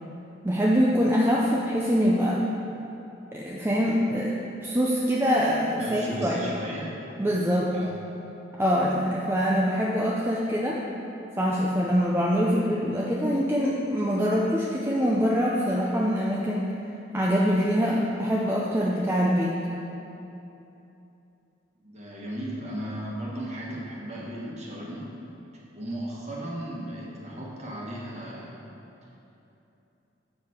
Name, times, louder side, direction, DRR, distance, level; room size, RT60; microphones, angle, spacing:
voice 1, 0.4-2.4 3.3-6.4 7.2-7.7 8.5-10.8 11.4-16.8 17.1-19.6, equal, 10° right, -4 dB, 0.5 m, -24 dB
voice 2, 5.6-6.9 7.7-8.0 21.8-25.1 25.7-28.7, right 1 dB, 35° right, -4 dB, 1.4 m, -35 dB
7.8 x 6.5 x 4.3 m, 2.9 s
head